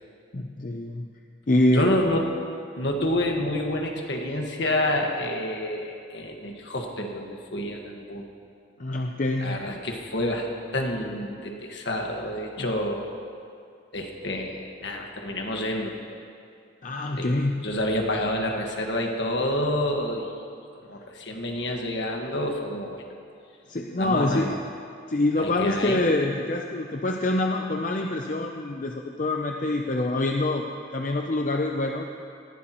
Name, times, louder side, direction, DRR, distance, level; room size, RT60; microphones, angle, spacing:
voice 1, 0.3-1.1 1.5-1.9 8.8-9.8 12.6-12.7 16.8-17.7 23.7-24.6 25.1-30.7 30.9-32.1, left 2 dB, 40° left, 2 dB, 0.6 m, -25 dB
voice 2, 1.7-2.3 2.8-8.3 9.4-10.5 10.7-13.1 13.9-15.9 17.2-17.3 17.6-20.3 20.9-23.0 24.0-24.4 25.4-26.1, left 1 dB, 65° left, 1 dB, 1.6 m, -28 dB
19.5 x 15.0 x 3.0 m, 2.4 s
head